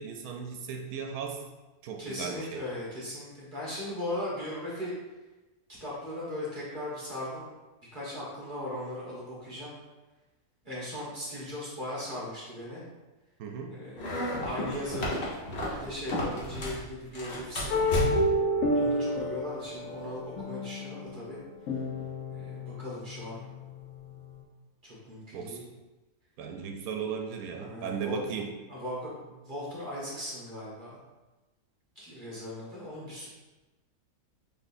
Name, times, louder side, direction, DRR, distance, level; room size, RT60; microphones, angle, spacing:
voice 1, 0.0-1.4 1.8-2.6 13.4-13.8 25.3-25.7 26.4-28.5, right 6 dB, 90° right, 3 dB, 1.0 m, -36 dB
voice 2, 2.0-4.9 5.8-7.5 7.9-9.7 10.6-12.8 13.7-14.2 14.4-15.2 15.7-17.9 18.7-21.4 22.3-23.4 24.8-25.6 27.5-28.2 28.7-31.0 32.0-33.3, left 1 dB, 40° right, -6 dB, 1.2 m, -38 dB
sound 1, 14.0-16.8 17.1-18.4, equal, 50° left, 1.2 m, -32 dB
sound 2, 17.7-24.4, left 1 dB, 70° left, 1.0 m, -31 dB
6.2 x 3.0 x 2.6 m, 1.1 s
omnidirectional pair, 1.5 m